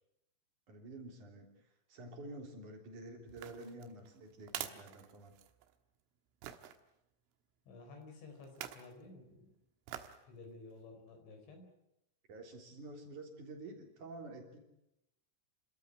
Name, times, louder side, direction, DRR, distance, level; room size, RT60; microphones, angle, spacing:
voice 1, 0.7-5.3 12.3-14.6, right 2 dB, 40° right, 3 dB, 4.4 m, -49 dB
sound 1, 3.3-5.7 6.4-6.8 8.4-8.9 9.9-10.2 10.7-10.8, right 12 dB, 80° right, 3.8 m, -46 dB
voice 2, 7.7-9.6 10.2-11.7, left 3 dB, 65° left, 5 dB, 6.4 m, -53 dB
29.5 x 13.5 x 9.8 m, 0.86 s
omnidirectional pair, 5.9 m